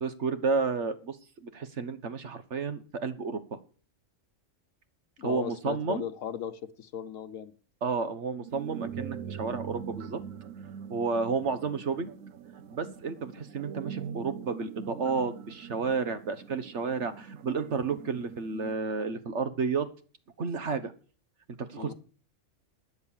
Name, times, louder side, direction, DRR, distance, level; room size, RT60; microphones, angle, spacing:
voice 1, 0.0-3.4 5.2-6.0 7.8-10.2 10.9-12.1 12.7-19.9 20.4-20.9 21.6-21.9, right 4 dB, 65° right, 11 dB, 1.5 m, -31 dB
voice 2, 5.2-7.5 21.8-21.9, left 8 dB, 85° left, 8 dB, 1.3 m, -37 dB
sound 1, 8.4-18.7, right 8 dB, 80° right, 1.2 m, -42 dB
13.0 x 9.7 x 7.3 m, 0.42 s
omnidirectional pair, 1.3 m